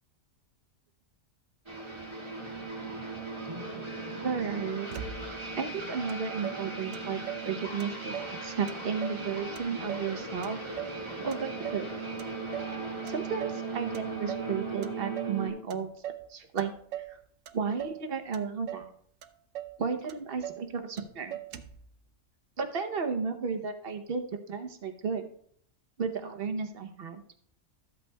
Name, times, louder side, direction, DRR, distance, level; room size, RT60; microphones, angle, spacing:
sound 1, 1.7-15.5, right 3 dB, 25° right, 1.6 m, -38 dB
voice 1, 4.2-4.9 5.6-10.6 11.2-11.8 13.0-15.9 16.3-16.7 17.0-17.2 17.5-18.9 19.8-21.4 22.6-25.2 26.0-27.2, right 6 dB, 50° right, 7 dB, 1.0 m, -33 dB
Motor vehicle (road), 4.9-5.6 6.1-6.2 6.4-7.5 7.8-8.4 8.7-9.3 9.6-11.0 11.3-11.9 12.2-12.8 13.1-13.7 13.9-14.5 14.8-15.4 15.7-16.3 16.6-17.2 17.5-18.0 18.3-18.9 19.2-19.3 19.5-19.8 20.1-20.7 21.0-21.1 21.3-21.9, right 11 dB, 85° right, 1.0 m, -40 dB
13.0 x 8.0 x 2.2 m, 0.62 s
omnidirectional pair, 1.3 m